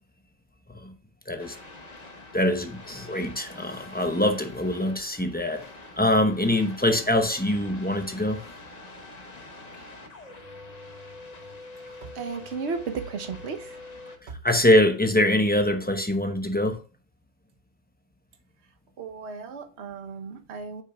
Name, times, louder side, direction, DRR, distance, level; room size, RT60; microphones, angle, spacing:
sound 1, 1.4-14.2, left 2 dB, 40° left, 1.0 m, -45 dB
voice 1, 2.3-5.6 6.0-8.4 14.2-16.8, left 1 dB, 10° left, 0.8 m, -24 dB
voice 2, 12.0-13.8 14.3-14.4 19.0-20.8, right 5 dB, 70° right, 1.2 m, -34 dB
8.1 x 6.3 x 2.3 m
omnidirectional pair, 1.2 m